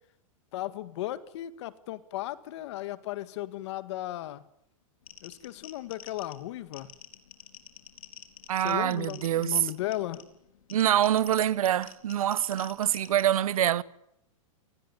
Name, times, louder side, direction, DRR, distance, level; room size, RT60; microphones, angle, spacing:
voice 1, 0.5-4.4 5.2-6.9 8.6-10.3, left 14 dB, 55° left, 1.9 m, -36 dB
sound 1, 5.1-13.3, left 10 dB, 85° left, 4.4 m, -49 dB
voice 2, 8.5-9.6 10.7-13.8, right 11 dB, 85° right, 1.2 m, -25 dB
28.5 x 19.5 x 9.8 m
supercardioid pair, 160°, 18 cm